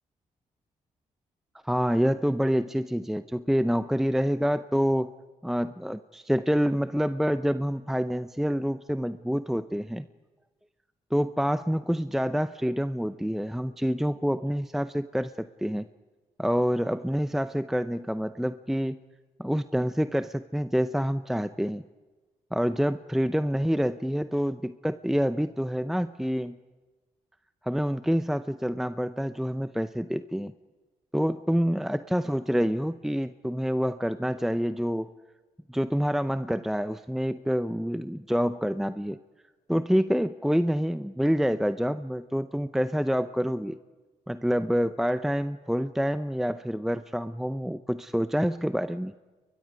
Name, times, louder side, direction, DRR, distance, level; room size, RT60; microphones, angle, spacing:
voice 1, 1.6-5.1 5.4-10.0 11.1-15.8 16.4-19.0 19.4-21.8 22.5-26.6 27.6-30.5 31.1-35.1 35.7-39.2 39.7-43.8 44.3-49.1, equal, ahead, 12 dB, 0.6 m, -27 dB
30.0 x 22.0 x 5.2 m, 1.3 s
supercardioid pair, 50°, 15 cm